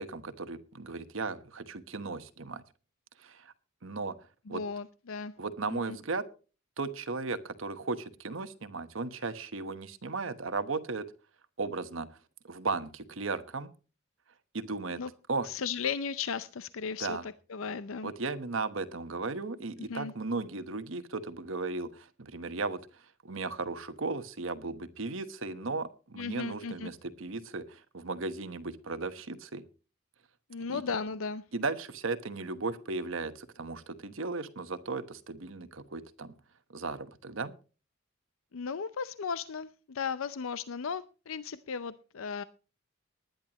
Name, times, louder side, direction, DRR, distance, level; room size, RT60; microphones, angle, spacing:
voice 1, 0.0-2.6 3.2-3.5 3.8-4.1 4.5-4.6 5.4-6.2 6.8-11.1 11.6-12.1 12.4-13.7 14.5-15.0 15.3-15.5 17.0-17.3 18.0-22.8 23.2-29.6 30.7-30.8 31.5-36.3 36.7-37.5, right 3 dB, 65° right, 11 dB, 1.1 m, -36 dB
voice 2, 4.5-5.3 5.7-6.0 15.0-15.1 15.4-18.1 19.9-20.1 26.2-26.9 30.5-31.4 38.5-42.4, left 5 dB, 75° left, 14 dB, 0.6 m, -36 dB
19.5 x 10.5 x 3.0 m, 0.35 s
head